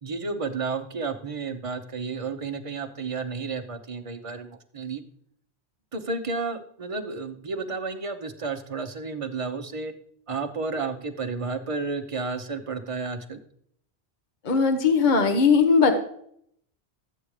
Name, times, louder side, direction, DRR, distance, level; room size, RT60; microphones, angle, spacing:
voice 1, 0.0-5.0 5.9-9.9 10.3-13.4, right 4 dB, 35° right, 7 dB, 0.9 m, -32 dB
voice 2, 14.4-15.9, left 5 dB, 45° left, 6 dB, 1.1 m, -19 dB
13.0 x 8.6 x 3.3 m, 0.67 s
omnidirectional pair, 1.1 m